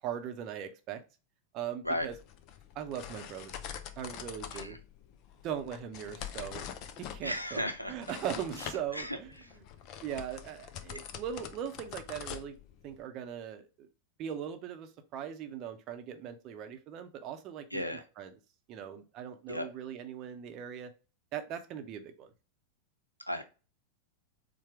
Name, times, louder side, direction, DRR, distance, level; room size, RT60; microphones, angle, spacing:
voice 1, 0.0-1.0 1.5-2.2 2.7-3.5 4.0-4.8 5.4-6.6 7.0-9.7 10.0-12.6 12.8-13.9 14.2-18.3 18.7-20.9 21.3-22.3, right 9 dB, 35° right, 8 dB, 0.7 m, -40 dB
sound 1, 1.9-13.0, left 8 dB, 40° left, 0.5 m, -45 dB
voice 2, 7.2-7.9 8.9-9.2 17.7-18.0 19.5-19.7 23.3-23.4, left 1 dB, 90° left, 7 dB, 0.6 m, -34 dB
4.3 x 2.2 x 4.6 m, 0.33 s
figure-of-eight pair, 90°, 0 cm